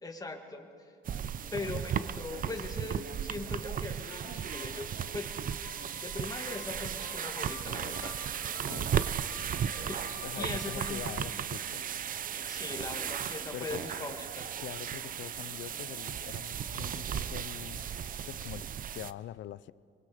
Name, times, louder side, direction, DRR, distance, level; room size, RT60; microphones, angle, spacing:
voice 1, 0.0-0.9 1.5-5.4 6.0-8.1 9.9-10.0 10.3-11.0 12.5-14.6, left 3 dB, 20° left, 1.9 m, -40 dB
sound 1, 1.1-19.1, right 8 dB, 45° right, 0.6 m, -36 dB
sound 2, 4.1-12.0, left 8 dB, 85° left, 2.1 m, -51 dB
voice 2, 10.2-11.9 13.5-13.8 14.6-17.8 18.3-19.7, left 13 dB, 70° left, 0.5 m, -44 dB
24.0 x 23.0 x 5.0 m
cardioid pair, 120°, 20 cm